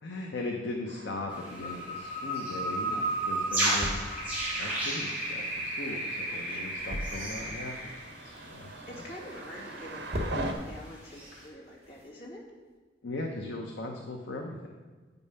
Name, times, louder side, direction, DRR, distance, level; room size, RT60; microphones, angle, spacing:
voice 1, 0.0-4.2 4.6-7.9 8.2-9.1 13.0-14.8, left 2 dB, 75° left, 1 dB, 0.8 m, -38 dB
sound 1, 0.8-10.5, right 2 dB, 70° right, 1.1 m, -44 dB
sound 2, 1.3-8.5 8.8-9.0 9.5-9.9 11.1-11.3, right 1 dB, 10° right, 3.0 m, -33 dB
sound 3, 2.2-12.8, equal, 35° right, 1.2 m, -43 dB
voice 2, 6.3-6.8 8.9-12.4, left 1 dB, 60° left, -5 dB, 2.7 m, -46 dB
9.2 x 5.4 x 5.5 m, 1.4 s
head